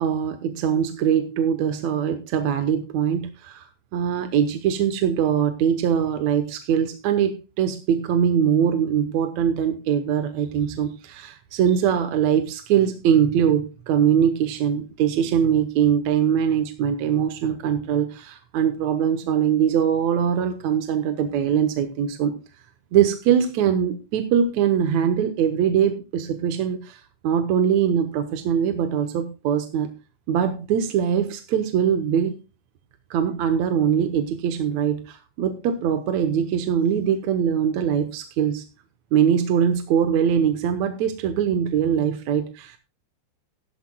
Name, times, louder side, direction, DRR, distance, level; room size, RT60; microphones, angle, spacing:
voice 1, 0.0-3.7 3.9-22.3 22.9-29.9 30.3-32.4 33.1-38.7 39.1-42.8, right 8 dB, 75° right, 7 dB, 2.2 m, -22 dB
15.5 x 12.5 x 2.2 m, 0.31 s
omnidirectional pair, 3.3 m